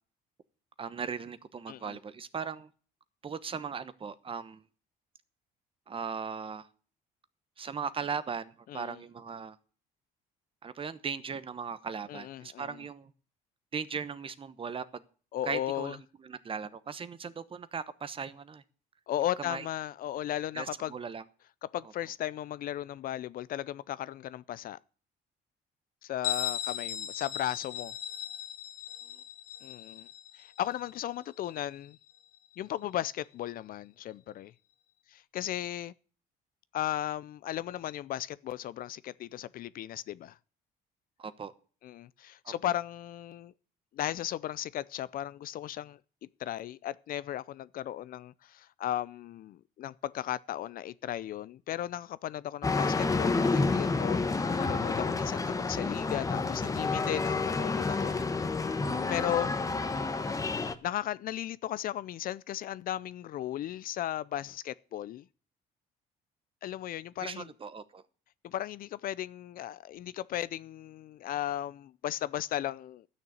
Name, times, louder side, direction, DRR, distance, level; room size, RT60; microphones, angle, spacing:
voice 1, 0.8-2.7 3.2-4.6 5.9-6.7 7.6-9.6 10.6-13.1 13.7-15.0 15.5-18.6 19.4-19.6 20.5-21.2 29.1-29.2 41.2-41.5 42.4-42.5 58.1-58.5 67.2-68.0, right 6 dB, 30° right, 1.0 m, -38 dB
voice 2, 1.7-2.0 8.7-9.0 12.1-12.8 15.3-15.9 19.1-20.9 21.6-24.8 26.0-27.9 29.6-30.1 30.3-32.0 32.6-34.5 35.1-35.9 36.7-40.4 41.8-43.5 43.9-46.0 46.4-58.2 59.1-59.5 60.6-65.2 66.6-67.5 68.4-73.1, left 12 dB, 60° left, 0.5 m, -36 dB
Bell, 26.2-31.7, left 10 dB, 75° left, 2.1 m, -38 dB
sound 1, 52.6-60.7, left 3 dB, 20° left, 1.0 m, -29 dB
12.0 x 6.6 x 8.6 m
cardioid pair, 110°, 17 cm